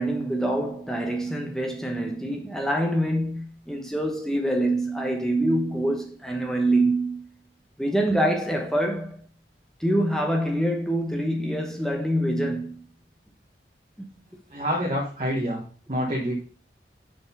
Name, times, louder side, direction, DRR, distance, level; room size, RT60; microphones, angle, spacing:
voice 1, 0.0-7.2 7.8-9.2 9.8-12.8 14.0-14.1, right 1 dB, 5° left, 1.1 m, -25 dB
voice 2, 14.5-16.3, equal, 35° right, 1.2 m, -27 dB
6.2 x 4.8 x 5.5 m
head